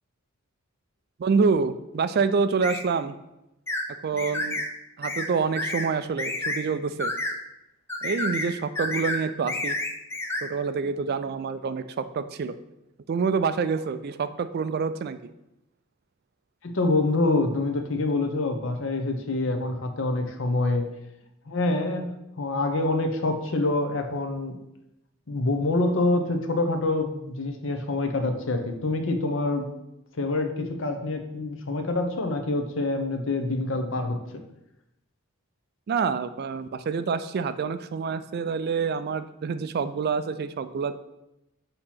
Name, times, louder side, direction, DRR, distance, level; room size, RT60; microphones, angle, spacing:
voice 1, 1.2-3.1 4.0-4.6 5.0-7.1 8.0-9.8 10.4-12.6 13.1-15.3 35.9-41.0, right 5 dB, 45° right, 12 dB, 0.3 m, -27 dB
sound 1, 2.6-2.8 3.7-3.9 4.2-4.7 5.0-5.3 5.6-5.9 6.2-6.6 7.0-7.3 7.9-8.5 8.8-9.2 9.5-10.4, left 2 dB, 10° left, 0.6 m, -29 dB
voice 2, 16.6-20.8 21.5-24.6 25.3-29.7 30.2-34.4, left 2 dB, 60° left, 6 dB, 0.8 m, -26 dB
6.6 x 2.9 x 5.7 m, 0.88 s
head